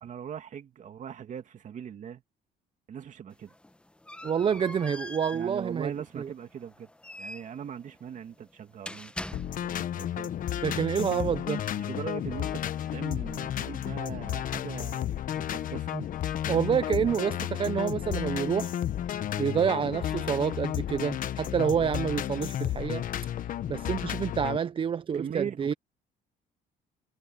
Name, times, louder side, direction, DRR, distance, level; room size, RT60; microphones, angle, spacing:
voice 1, 0.0-2.2 2.9-3.5 5.3-6.9 7.2-10.3 11.1-11.2 11.8-12.6 12.9-15.9 25.1-25.8, right 8 dB, 45° right, 2.4 m, -40 dB
sound 1, 3.3-9.9, left 1 dB, 5° left, 1.0 m, -44 dB
voice 2, 4.2-5.9 6.2-6.3 10.6-11.6 15.9-16.0 16.5-18.7 19.4-23.0 23.7-25.7, right 7 dB, 30° right, 0.5 m, -28 dB
sound 2, 9.3-24.6, left 11 dB, 55° left, 1.1 m, -32 dB
cardioid pair, 110°, 17 cm